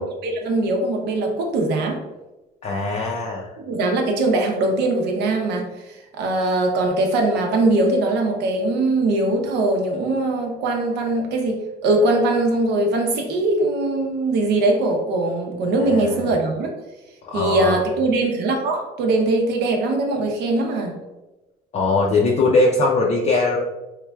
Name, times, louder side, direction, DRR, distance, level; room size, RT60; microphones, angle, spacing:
voice 1, 0.0-2.0 3.7-16.7 17.3-21.0, right 2 dB, 80° right, 2 dB, 0.8 m, -21 dB
voice 2, 2.6-3.5 15.9-16.3 17.3-17.8 21.7-23.6, left 3 dB, 40° left, -2 dB, 0.5 m, -20 dB
3.7 x 3.2 x 2.2 m, 1.1 s
cardioid pair, 110°, 17 cm